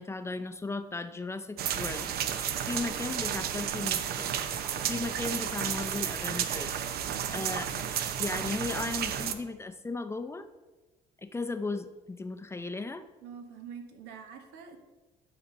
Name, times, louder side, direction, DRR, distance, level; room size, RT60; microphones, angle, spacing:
voice 1, 0.0-4.3 4.8-6.8 7.3-7.7 8.2-10.5 11.2-13.1, left 3 dB, 15° left, 9 dB, 0.5 m, -36 dB
sound 1, 1.6-9.3, right 9 dB, 65° right, 0.7 m, -32 dB
voice 2, 7.1-7.7 13.2-14.8, right 7 dB, 90° right, 5 dB, 1.4 m, -46 dB
11.5 x 4.2 x 5.4 m, 1.2 s
cardioid pair, 110°, 17 cm